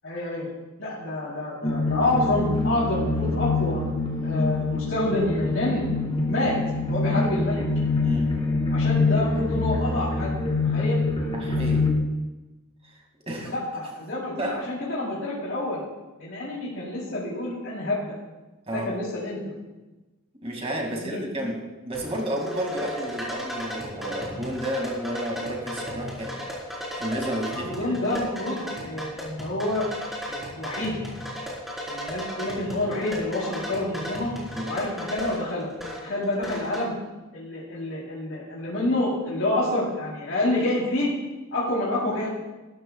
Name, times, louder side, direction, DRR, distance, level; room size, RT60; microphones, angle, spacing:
voice 1, 0.0-0.5 0.8-3.8 4.2-5.9 6.3-6.6 6.9-7.6 8.7-11.0 13.4-15.8 16.2-18.1 18.7-19.5 20.9-21.2 27.5-29.9 30.3-31.0 31.9-34.3 34.6-35.7 36.0-37.0 37.3-41.1 41.5-42.3, left 1 dB, 60° left, -7 dB, 3.6 m, -28 dB
sound 1, 1.6-11.9, left 3 dB, 25° left, 2.4 m, -25 dB
voice 2, 8.0-8.4 11.3-11.9 13.3-13.5 14.4-14.7 18.7-18.9 20.4-26.5 26.9-27.8 34.5-34.8, equal, 25° right, 0 dB, 2.3 m, -31 dB
sound 2, 21.9-36.8, equal, ahead, 4.1 m, -35 dB
20.0 x 13.5 x 2.4 m, 1.1 s
head